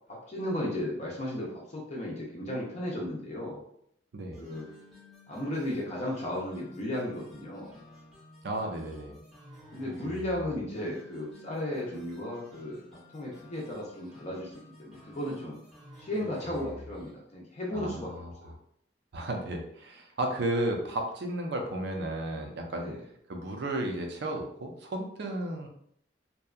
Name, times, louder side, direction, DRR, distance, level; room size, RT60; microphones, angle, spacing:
voice 1, 0.1-3.6 4.4-4.7 5.3-7.7 9.7-12.8 13.1-14.5 14.8-15.6 16.0-18.1 18.4-18.6 22.8-23.0, left 1 dB, 40° left, -3 dB, 0.5 m, -35 dB
sound 1, 4.3-17.2, left 1 dB, ahead, 0.7 m, -52 dB
voice 2, 8.4-9.2 17.7-18.3 19.1-22.9 23.3-25.7, right 1 dB, 65° right, 2 dB, 0.5 m, -33 dB
2.7 x 2.2 x 2.3 m, 0.69 s
head